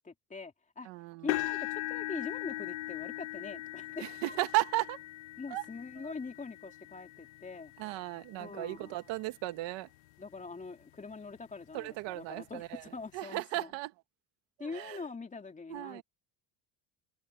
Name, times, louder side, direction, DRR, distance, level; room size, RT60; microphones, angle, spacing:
voice 1, 0.0-0.9 1.2-4.4 5.4-7.7 8.4-9.0 10.2-13.7 14.6-16.0, left 4 dB, 15° left, 3.0 m, -43 dB
voice 2, 0.8-1.4 4.0-5.0 5.5-5.6 6.0-6.1 7.8-9.9 11.7-13.9 14.6-15.0 15.7-16.0, right 19 dB, 80° right, 2.1 m, -35 dB
sound 1, 1.3-9.3 9.9-10.2 10.6-10.7 12.1-12.2, left 18 dB, 85° left, 1.4 m, -40 dB
cardioid pair, 125°, 44 cm